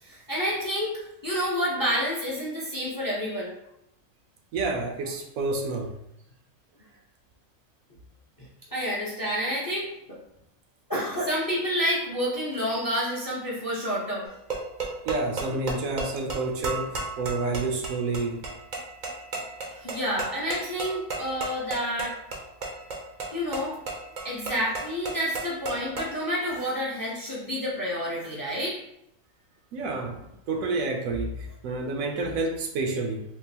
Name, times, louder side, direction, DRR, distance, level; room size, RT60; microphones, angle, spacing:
voice 1, 0.0-3.5 8.4-10.2 10.9-14.2 19.7-22.1 23.3-23.8 24.2-28.8, equal, 25° left, -5 dB, 0.4 m, -29 dB
voice 2, 4.5-6.0 15.1-18.4 29.7-33.2, right 3 dB, 80° right, 3 dB, 1.0 m, -29 dB
sound 1, 14.3-26.2, right 3 dB, 50° right, 0.5 m, -35 dB
3.7 x 2.4 x 2.7 m, 0.80 s
omnidirectional pair, 1.5 m